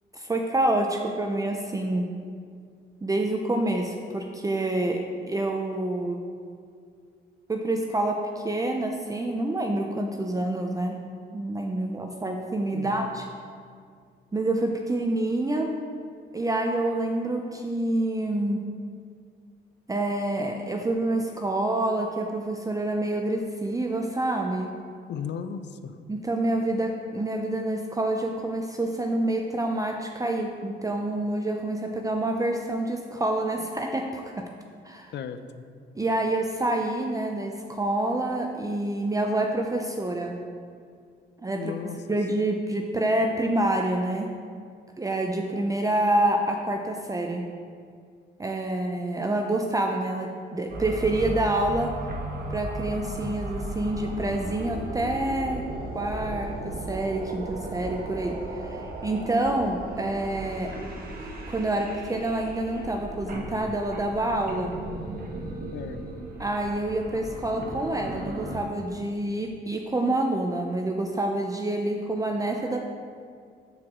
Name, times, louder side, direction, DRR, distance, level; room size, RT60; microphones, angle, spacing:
voice 1, 0.1-2.1 3.0-5.0 5.3-6.2 7.5-10.9 11.3-13.2 14.3-15.7 16.3-18.6 19.9-24.7 26.1-34.4 34.8-35.1 36.0-40.3 41.4-41.7 42.1-44.3 45.0-47.4 48.4-51.9 52.5-55.6 55.9-60.7 61.5-64.7 66.4-72.8, right 1 dB, 15° right, 2 dB, 0.6 m, -27 dB
voice 2, 12.7-13.1 25.1-26.0 35.1-35.6 41.5-42.0 65.7-66.0, left 7 dB, 60° left, 10 dB, 0.6 m, -35 dB
sound 1, 50.7-68.6, right 1 dB, 50° right, 1.4 m, -36 dB
12.5 x 4.7 x 3.7 m, 2.2 s
cardioid pair, 90°, 20 cm